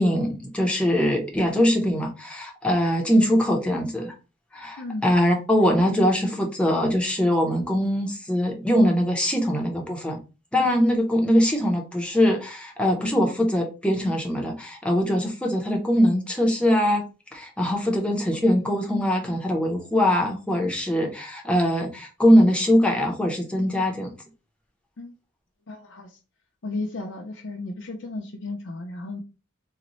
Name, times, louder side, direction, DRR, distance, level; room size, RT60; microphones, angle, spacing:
voice 1, 0.0-4.1 4.5-10.2 10.5-17.0 17.3-24.1, equal, 5° left, 1 dB, 0.6 m, -22 dB
voice 2, 25.7-26.2 26.6-29.2, left 2 dB, 60° left, 1 dB, 0.5 m, -34 dB
3.9 x 2.1 x 3.0 m, 0.31 s
head